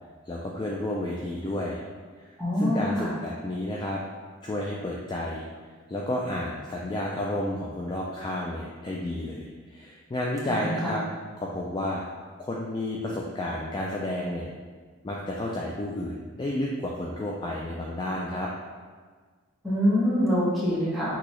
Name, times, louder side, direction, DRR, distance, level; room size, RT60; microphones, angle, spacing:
voice 1, 0.3-1.8 2.2-4.0 4.4-5.5 5.9-11.0 11.4-12.0 12.4-14.5 15.0-18.5, left 1 dB, 20° left, -3 dB, 0.3 m, -31 dB
voice 2, 2.4-3.1 10.5-10.9 19.6-21.2, equal, ahead, -10 dB, 1.3 m, -25 dB
6.0 x 2.8 x 3.1 m, 1.5 s
head